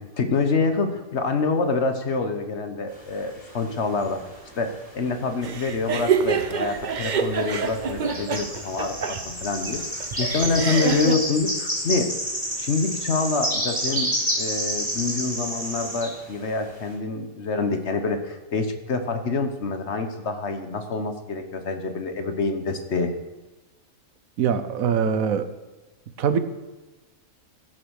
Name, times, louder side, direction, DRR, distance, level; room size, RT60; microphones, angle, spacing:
voice 1, 0.0-4.2 4.6-12.1 12.6-23.1, left 4 dB, 55° left, 7 dB, 1.3 m, -26 dB
sound 1, 3.0-4.6 4.9-6.1 6.4-6.6 7.3-16.1, equal, 5° right, 4.0 m, -29 dB
sound 2, 5.4-11.1, right 6 dB, 45° right, 0.7 m, -27 dB
voice 2, 24.4-25.5 26.2-26.4, right 7 dB, 75° right, 11 dB, 1.3 m, -22 dB
15.5 x 6.3 x 6.4 m, 1.1 s
omnidirectional pair, 1.4 m